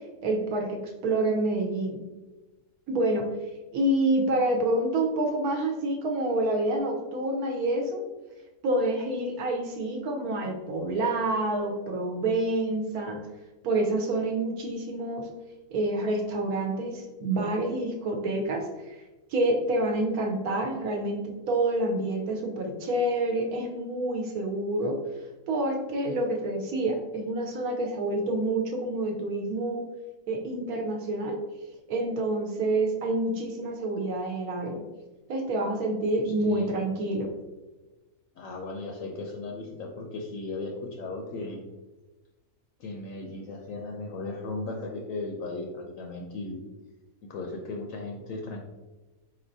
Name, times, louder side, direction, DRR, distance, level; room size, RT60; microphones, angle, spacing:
voice 1, 0.2-2.0 2.9-3.3 3.7-8.0 8.6-13.2 13.6-15.3 15.7-19.0 19.3-25.0 25.5-29.8 30.3-31.4 31.9-34.8 35.3-37.3, right 2 dB, 75° right, 2 dB, 1.2 m, -28 dB
voice 2, 36.2-36.7 38.4-41.6 42.8-46.6 47.3-48.6, left 3 dB, 70° left, 2 dB, 0.9 m, -36 dB
4.3 x 4.2 x 2.6 m, 1.1 s
omnidirectional pair, 1.6 m